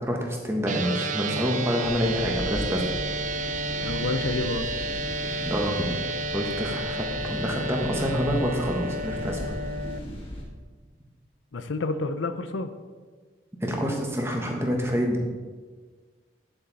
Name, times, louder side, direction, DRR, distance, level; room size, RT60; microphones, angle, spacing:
voice 1, 0.0-2.8 5.4-5.9 6.3-9.4 13.6-15.2, equal, 15° right, 1 dB, 1.2 m, -27 dB
sound 1, 0.7-10.0, right 2 dB, 40° right, 0.4 m, -31 dB
sound 2, 1.8-10.4, equal, 30° left, 1.5 m, -38 dB
voice 2, 3.8-4.7 11.5-12.7, left 3 dB, 85° left, 10 dB, 0.6 m, -29 dB
9.5 x 7.2 x 4.0 m, 1.5 s
head